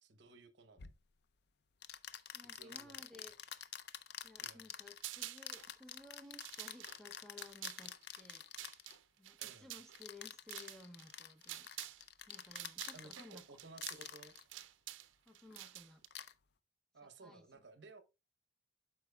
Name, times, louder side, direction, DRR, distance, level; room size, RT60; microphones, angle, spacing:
voice 1, 0.0-0.9 2.5-3.3 4.4-4.6 9.4-9.8 12.9-14.4 16.9-18.0, right 3 dB, 65° right, 0.9 m, -57 dB
sound 1, 0.8-1.0 1.8-9.0 10.0-13.4 13.8-14.4 15.5-15.7 16.1-16.3, left 9 dB, 55° left, 0.5 m, -48 dB
voice 2, 2.3-3.3 4.2-8.4 9.2-11.7 12.3-13.4 15.3-16.0 17.0-17.5, left 2 dB, 5° left, 0.7 m, -57 dB
sound 2, 5.0-5.7 6.2-12.0 12.3-16.1, right 14 dB, 80° right, 0.5 m, -49 dB
12.0 x 4.7 x 2.3 m
head